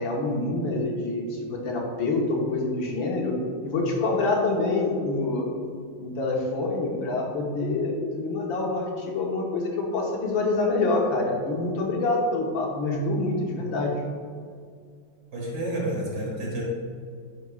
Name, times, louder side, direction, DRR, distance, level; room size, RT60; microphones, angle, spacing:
voice 1, 0.0-3.3 3.6-5.5 6.0-14.0, left 2 dB, 70° left, -1 dB, 1.7 m, -26 dB
voice 2, 15.3-16.6, right 1 dB, 50° right, -4 dB, 2.2 m, -30 dB
10.5 x 5.8 x 2.3 m, 2.1 s
omnidirectional pair, 2.3 m